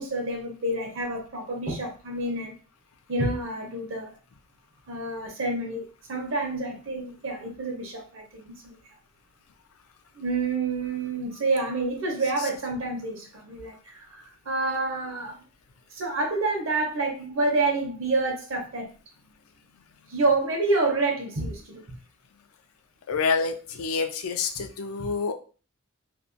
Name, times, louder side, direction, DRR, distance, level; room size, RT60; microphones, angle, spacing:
voice 1, 0.0-2.6 3.1-4.1 4.9-8.7 10.1-15.4 15.9-18.9 20.1-22.0 24.6-24.7 25.0-25.1, right 2 dB, 65° right, 1 dB, 0.8 m, -28 dB
voice 2, 23.1-25.3, left 5 dB, 80° left, 7 dB, 0.4 m, -27 dB
2.6 x 2.1 x 2.6 m, 0.36 s
head